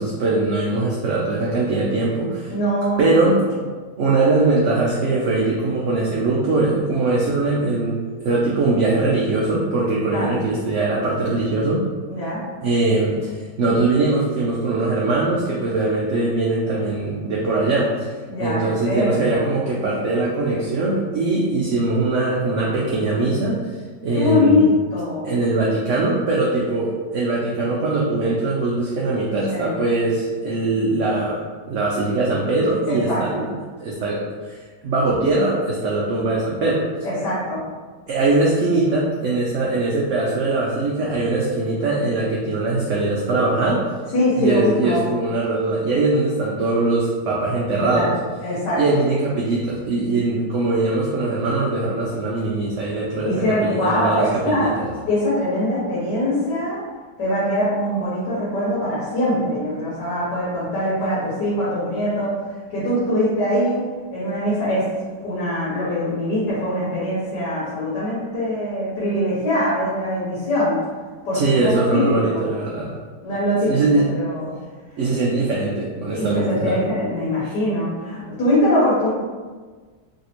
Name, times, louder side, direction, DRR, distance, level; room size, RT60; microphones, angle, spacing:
voice 1, 0.0-2.5 3.0-3.4 4.0-11.8 12.6-18.1 18.4-23.6 24.0-24.7 25.2-31.4 31.7-33.5 33.8-34.6 34.8-36.8 38.1-43.8 44.4-48.1 48.8-53.3 53.6-54.9 71.3-72.9 73.6-74.1 75.0-76.8, right 2 dB, 85° right, -4 dB, 0.6 m, -21 dB
voice 2, 2.5-3.1 10.1-10.4 12.1-12.4 18.3-18.6 18.8-19.5 24.1-25.3 29.5-29.7 32.9-33.4 37.0-37.6 44.1-45.0 47.8-48.1 48.4-49.0 53.2-54.7 55.1-56.8 57.2-63.8 64.1-64.8 65.2-70.8 71.2-72.2 73.2-74.5 76.1-79.1, left 1 dB, 80° left, -9 dB, 1.6 m, -22 dB
3.2 x 2.7 x 2.9 m, 1.4 s
omnidirectional pair, 1.8 m